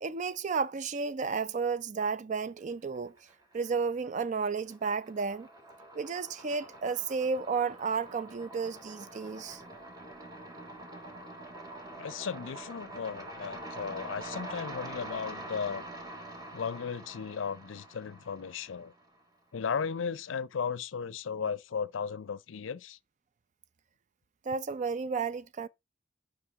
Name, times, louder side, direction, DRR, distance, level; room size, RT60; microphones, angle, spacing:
voice 1, 0.0-3.1 3.5-5.5 5.9-9.6 24.5-25.7, right 5 dB, 40° right, 0.4 m, -32 dB
sound 1, 2.9-3.7 4.0-19.2, right 1 dB, 20° right, 1.5 m, -45 dB
voice 2, 12.0-15.8 16.5-18.9 19.5-23.0, left 6 dB, 85° left, 0.5 m, -35 dB
9.6 x 5.3 x 3.5 m
head